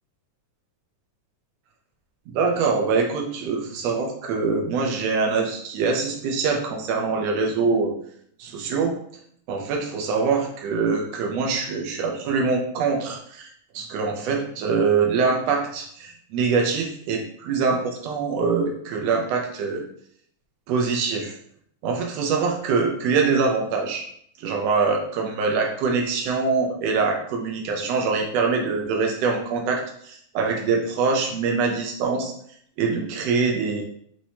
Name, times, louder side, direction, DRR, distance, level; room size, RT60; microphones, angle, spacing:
voice 1, 2.3-7.9 8.4-9.0 9.5-13.5 13.7-19.8 20.7-21.3 21.8-24.1 24.4-32.3 32.8-33.8, right 4 dB, 80° right, 1 dB, 1.5 m, -24 dB
5.9 x 3.1 x 2.8 m, 0.66 s
omnidirectional pair, 3.9 m